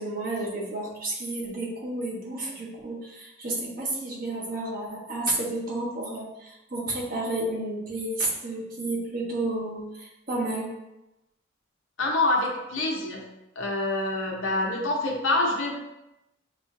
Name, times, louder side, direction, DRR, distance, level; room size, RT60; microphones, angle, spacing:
voice 1, 0.0-10.7, right 2 dB, 45° right, -4 dB, 1.2 m, -31 dB
voice 2, 12.0-13.2 13.6-15.7, left 2 dB, 85° left, 0 dB, 0.9 m, -26 dB
7.0 x 2.4 x 2.7 m, 0.93 s
head